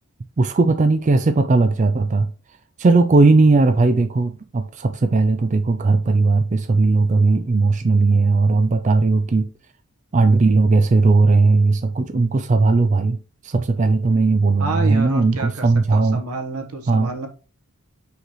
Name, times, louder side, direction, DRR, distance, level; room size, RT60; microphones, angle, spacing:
voice 1, 0.4-2.3 2.8-9.5 10.1-13.2 13.4-16.2 16.9-17.1, right 3 dB, 35° right, 0.4 m, -17 dB
voice 2, 14.6-17.3, right 2 dB, 85° right, 1.2 m, -29 dB
5.7 x 5.6 x 3.1 m
head